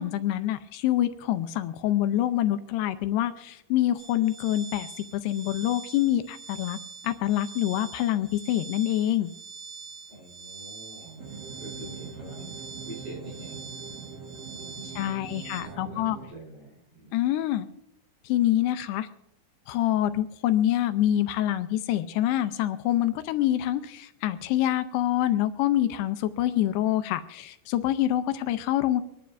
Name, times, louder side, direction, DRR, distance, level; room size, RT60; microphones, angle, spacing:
voice 1, 0.0-4.9 5.1-6.8 7.0-9.3 15.0-16.2 17.1-17.7 18.2-19.1 19.7-29.0, left 13 dB, 85° left, 10 dB, 2.7 m, -26 dB
sound 1, 4.0-15.6, right 5 dB, 30° right, 2.4 m, -44 dB
voice 2, 10.1-11.3 11.6-12.5 12.8-13.6 14.5-17.2, right 1 dB, 45° right, -2 dB, 5.0 m, -45 dB
sound 2, 11.2-16.3, right 5 dB, 65° right, 2.7 m, -42 dB
25.0 x 11.5 x 2.5 m, 0.80 s
omnidirectional pair, 4.8 m